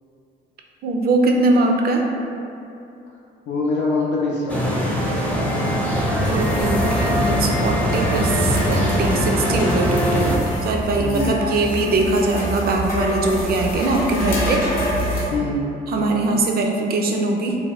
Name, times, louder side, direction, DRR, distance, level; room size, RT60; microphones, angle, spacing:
voice 1, 0.8-2.1 6.3-14.6 15.9-17.6, right 2 dB, 50° right, 2 dB, 0.4 m, -21 dB
voice 2, 3.5-4.8 11.0-11.4 15.3-15.7, left 2 dB, 65° left, -4 dB, 0.4 m, -23 dB
sound 1, 4.5-10.4, equal, 5° left, 0.5 m, -21 dB
sound 2, 6.0-15.3, equal, 50° left, 0.8 m, -26 dB
2.7 x 2.1 x 3.1 m, 2.7 s
cardioid pair, 90°, 20 cm